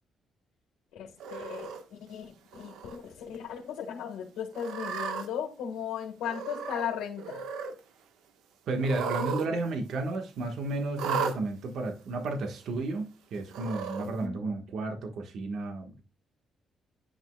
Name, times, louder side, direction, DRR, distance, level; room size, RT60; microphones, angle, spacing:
voice 1, 0.9-7.4 14.0-14.4, left 8 dB, 90° left, 1.7 m, -37 dB
Cat, 1.2-1.8 2.5-3.0 3.3-3.4 4.5-5.3 6.2-6.9 7.2-7.7 8.8-9.5 9.7-9.8 10.9-11.4 12.3-12.4 13.5-14.1, right 6 dB, 90° right, 1.2 m, -35 dB
voice 2, 8.7-16.0, right 2 dB, 70° right, 1.4 m, -32 dB
10.0 x 6.3 x 2.3 m
cardioid pair, 90°, 0 cm